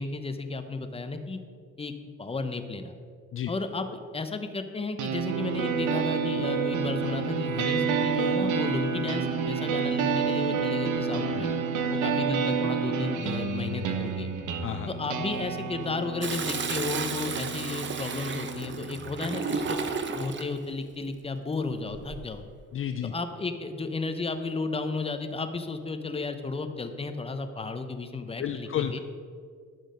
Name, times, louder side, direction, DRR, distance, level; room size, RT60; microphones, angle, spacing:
voice 1, 0.0-1.4 1.8-1.9 2.2-3.0 3.5-11.5 11.9-14.3 14.9-19.8 20.1-22.4 23.1-29.0, left 3 dB, 20° left, 8 dB, 0.8 m, -33 dB
sound 1, 5.0-19.0, right 5 dB, 80° right, 0.9 m, -29 dB
Toilet flush, 16.2-20.5 21.9-22.4, right 5 dB, 40° right, 0.8 m, -33 dB
voice 2, 22.7-23.1 28.4-29.0, left 9 dB, 45° left, 8 dB, 0.5 m, -31 dB
10.5 x 6.1 x 5.1 m, 2.1 s
cardioid pair, 90°, 30 cm